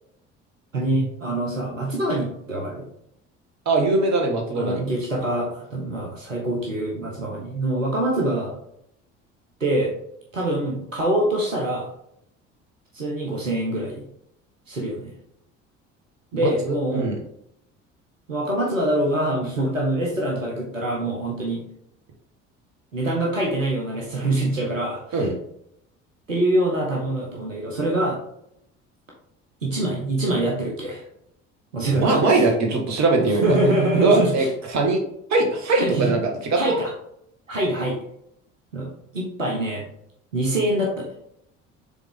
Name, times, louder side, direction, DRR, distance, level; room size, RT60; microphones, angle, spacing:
voice 1, 0.7-2.8 4.5-8.6 9.6-9.9 10.3-11.9 12.9-14.0 14.7-15.1 16.3-17.1 18.3-21.6 22.9-25.3 26.3-28.2 29.6-31.0 31.7-32.5 33.3-34.5 35.7-36.1 36.5-36.9 37.5-38.0 38.7-39.9 40.3-41.1, right 1 dB, 85° right, -2 dB, 1.1 m, -24 dB
voice 2, 3.7-4.8 16.3-17.2 25.1-25.3 32.0-33.4 34.0-35.0 35.3-36.2 36.5-36.8, right 3 dB, 45° right, 1 dB, 1.7 m, -21 dB
7.1 x 3.7 x 3.7 m, 0.75 s
figure-of-eight pair, 55°, 38 cm